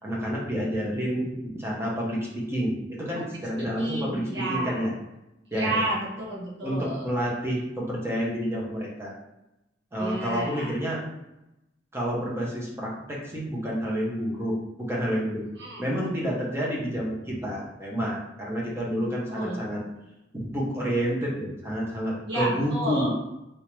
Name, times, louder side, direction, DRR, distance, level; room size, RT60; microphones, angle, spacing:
voice 1, 0.0-4.9 5.5-5.9 6.6-9.1 9.9-11.0 11.9-15.4 15.8-19.8 20.3-23.1, equal, 15° right, -4 dB, 0.9 m, -29 dB
voice 2, 3.8-4.8 5.5-7.1 10.0-10.7 15.6-15.9 19.0-19.6 22.3-23.1, right 1 dB, 65° right, -5 dB, 1.3 m, -31 dB
3.3 x 2.7 x 3.0 m, 0.91 s
head